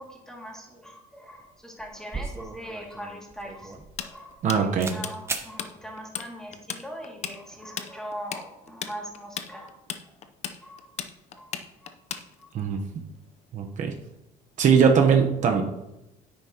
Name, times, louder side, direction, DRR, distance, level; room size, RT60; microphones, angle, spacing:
voice 1, 0.0-9.8 10.6-10.9 11.4-11.5 12.4-12.5, equal, 5° left, -1 dB, 2.3 m, -41 dB
sound 1, 1.4-1.5 1.8-4.5 4.8-5.0 5.3-5.5, right 3 dB, 15° right, 0.9 m, -36 dB
Tools, 4.0-5.7 6.0-6.3 6.5-12.6, left 8 dB, 45° left, 0.7 m, -35 dB
voice 2, 4.4-4.9 12.5-12.8 13.5-13.9 14.6-15.6, right 6 dB, 55° right, 3 dB, 1.0 m, -20 dB
10.0 x 8.6 x 2.9 m, 0.93 s
cardioid pair, 125°, 15 cm